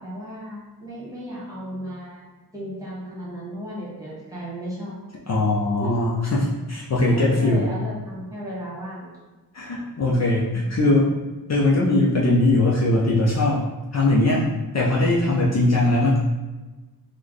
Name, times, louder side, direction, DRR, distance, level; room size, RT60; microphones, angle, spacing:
voice 1, 0.0-2.2 2.5-5.0 5.8-6.0 7.1-9.1, equal, 10° right, -8 dB, 1.2 m, -35 dB
voice 2, 5.3-7.7 9.5-11.1 11.5-13.7 13.9-14.5 14.7-16.2, left 2 dB, 45° left, -5 dB, 0.5 m, -20 dB
3.2 x 2.2 x 3.8 m, 1.2 s
wide cardioid pair, 155°, 36 cm